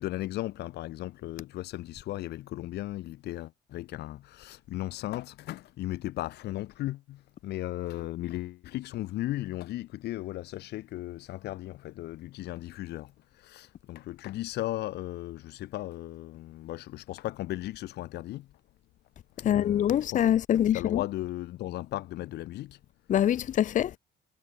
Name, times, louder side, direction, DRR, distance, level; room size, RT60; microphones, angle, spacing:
voice 1, 0.0-18.5 19.4-20.2 20.7-22.8, left 16 dB, 75° left, 6.6 m, -36 dB
voice 2, 19.5-21.0 23.1-24.0, left 10 dB, 50° left, 0.8 m, -24 dB
cardioid pair, 110°, 17 cm